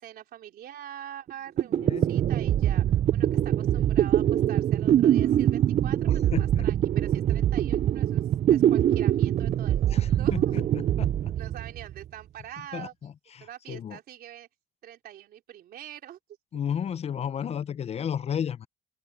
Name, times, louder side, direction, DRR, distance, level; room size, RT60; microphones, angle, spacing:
voice 1, 0.0-2.9 3.1-8.2 8.5-10.6 11.4-12.9 13.4-14.5 14.8-16.2, right 11 dB, 65° right, 3.7 m, -44 dB
sound 1, 1.3-1.4 1.6-12.0, right 11 dB, 40° right, 0.4 m, -23 dB
voice 2, 6.3-6.7 9.9-11.1 12.7-14.0 16.5-18.7, left 8 dB, 40° left, 0.6 m, -33 dB
open air
cardioid pair, 110°, 17 cm